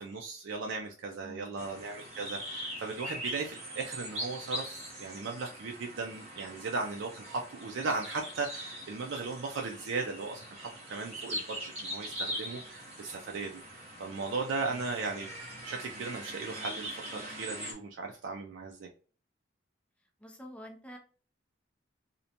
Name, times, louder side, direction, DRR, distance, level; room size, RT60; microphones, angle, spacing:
voice 1, 0.0-15.3 15.6-18.9, right 4 dB, 70° right, 0.4 m, -37 dB
voice 2, 1.2-1.7 20.2-21.0, left 1 dB, 5° left, 0.5 m, -47 dB
sound 1, 1.6-17.7, equal, 35° right, 0.9 m, -42 dB
2.6 x 2.1 x 2.7 m
head